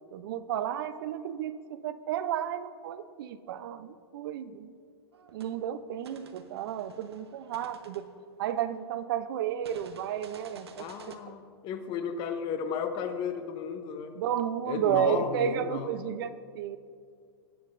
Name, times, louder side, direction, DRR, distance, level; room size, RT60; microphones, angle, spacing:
voice 1, 0.1-4.7 5.3-8.1 8.4-11.4 14.2-16.8, right 10 dB, 60° right, 13 dB, 0.6 m, -32 dB
sound 1, 5.1-5.5 6.0-9.0 9.6-11.2, right 6 dB, 90° right, 0.8 m, -52 dB
voice 2, 10.8-14.2 14.7-15.9, left 7 dB, 35° left, 8 dB, 0.9 m, -34 dB
17.5 x 7.2 x 2.6 m, 2.3 s
hypercardioid pair, 125°, 13 cm